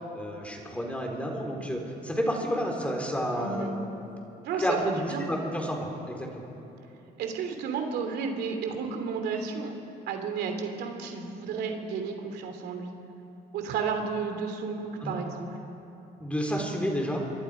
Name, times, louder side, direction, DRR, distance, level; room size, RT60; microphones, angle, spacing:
voice 1, 0.0-3.8 4.6-6.5 15.0-15.2 16.2-17.2, equal, 10° left, 1 dB, 4.0 m, -30 dB
voice 2, 3.4-3.7 4.4-5.2 7.2-9.7 10.1-12.9 13.5-15.5, right 5 dB, 80° right, 5 dB, 2.8 m, -32 dB
26.5 x 23.0 x 5.1 m, 3.0 s
cardioid pair, 110°, 17 cm